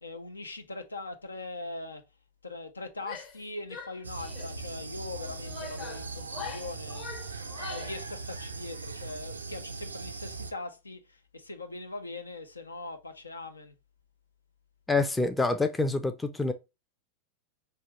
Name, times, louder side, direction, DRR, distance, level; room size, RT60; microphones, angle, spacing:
voice 1, 0.0-2.0 2.4-13.7, left 2 dB, 80° left, 0.6 m, -41 dB
Female speech woman speaking / Yell, 3.0-3.4 3.7-4.6 5.2-8.0, left 4 dB, 40° left, 1.0 m, -42 dB
sound 1, 4.0-10.5, right 3 dB, 80° right, 0.4 m, -40 dB
voice 2, 14.9-16.5, left 3 dB, 10° left, 0.5 m, -26 dB
5.4 x 2.4 x 2.9 m
figure-of-eight pair, 90°, 0 cm